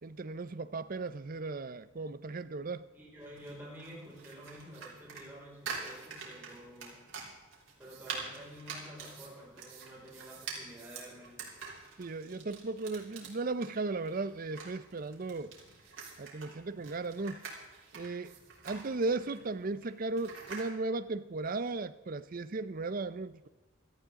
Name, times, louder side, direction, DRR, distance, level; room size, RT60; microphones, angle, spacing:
voice 1, 0.0-2.8 12.0-15.5 16.2-17.5 17.9-18.3 18.7-23.5, right 3 dB, 45° right, 0.6 m, -36 dB
voice 2, 2.9-7.0 7.8-11.4, equal, 10° right, 5.3 m, -50 dB
sound 1, 3.2-20.7, right 5 dB, 90° right, 3.5 m, -46 dB
17.0 x 13.0 x 3.7 m
head